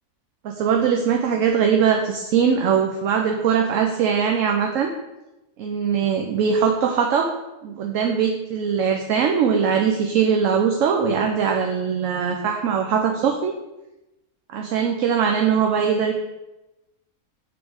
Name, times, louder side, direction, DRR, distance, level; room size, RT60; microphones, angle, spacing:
voice 1, 0.4-4.9 5.6-7.3 7.6-13.5 14.5-16.1, right 7 dB, 65° right, 3 dB, 0.9 m, -21 dB
6.9 x 4.0 x 4.8 m, 0.98 s
omnidirectional pair, 1.5 m